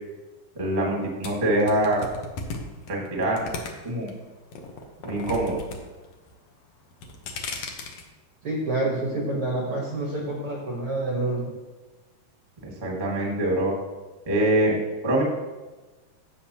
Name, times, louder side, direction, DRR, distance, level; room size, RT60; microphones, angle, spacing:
voice 1, 0.5-2.1 2.9-3.5 3.8-4.1 5.0-5.6 12.6-13.7 14.3-14.8 15.0-15.2, right 1 dB, 40° right, -2 dB, 0.6 m, -24 dB
sound 1, 1.2-4.1 4.5-5.8 6.0-6.5 6.9-8.0, left 4 dB, 80° left, 1.5 m, -35 dB
voice 2, 8.4-11.5, right 2 dB, 80° right, -2 dB, 1.2 m, -27 dB
15.0 x 6.9 x 2.9 m, 1.2 s
omnidirectional pair, 4.7 m